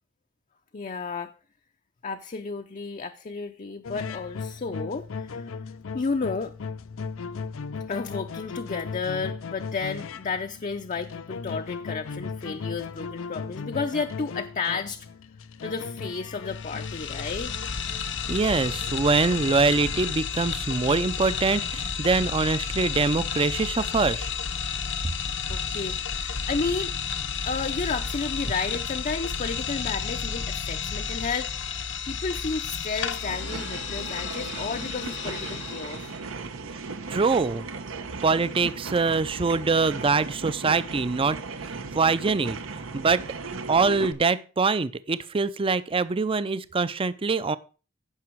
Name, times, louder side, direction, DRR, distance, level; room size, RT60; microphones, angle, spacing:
voice 1, 0.7-1.3 2.0-5.5 5.9-6.5 7.9-15.1 15.6-17.5 25.5-26.9 27.4-31.5 32.1-36.1, left 4 dB, 40° left, 0.6 m, -32 dB
sound 1, 3.8-20.1, left 5 dB, 85° left, 0.5 m, -37 dB
sound 2, 16.5-36.2, left 6 dB, 65° left, 0.9 m, -32 dB
voice 2, 18.3-24.3 35.5-35.6 37.1-37.6 38.2-41.4 41.7-43.2 43.7-47.6, right 4 dB, 25° right, 0.5 m, -24 dB
sound 3, 33.2-44.1, right 4 dB, 90° right, 1.1 m, -36 dB
15.5 x 6.0 x 4.6 m
head